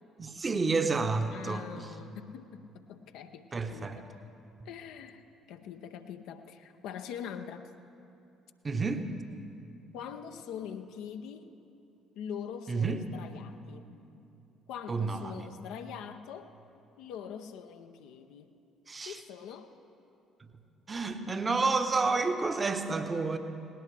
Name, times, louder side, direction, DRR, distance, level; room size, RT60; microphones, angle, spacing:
voice 1, 0.2-1.9 3.5-4.0 8.6-9.0 12.7-13.0 14.9-15.5 18.9-19.2 20.9-23.4, right 4 dB, 30° right, 8 dB, 1.1 m, -30 dB
voice 2, 1.3-4.1 4.6-7.7 9.9-11.5 12.2-13.9 14.7-16.5 17.0-18.5 19.0-19.7, left 8 dB, 60° left, 6 dB, 0.7 m, -43 dB
19.5 x 18.5 x 3.4 m, 2.7 s
figure-of-eight pair, 50°, 0 cm